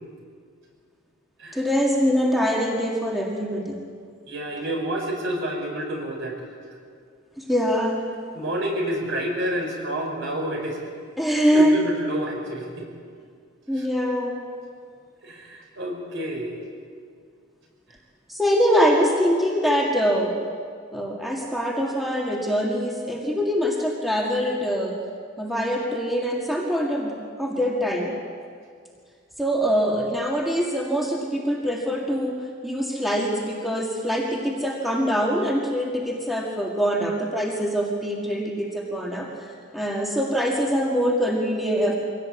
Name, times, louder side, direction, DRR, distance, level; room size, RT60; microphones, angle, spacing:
voice 1, 1.5-3.8 7.4-8.0 11.2-11.8 13.7-14.4 18.3-20.4 20.9-25.0 25.4-28.1 29.4-42.0, equal, ahead, -2 dB, 2.0 m, -24 dB
voice 2, 4.3-6.4 8.3-10.8 11.5-12.9 15.2-16.5, right 1 dB, 55° right, 1 dB, 5.3 m, -29 dB
23.5 x 17.5 x 8.5 m, 2.2 s
head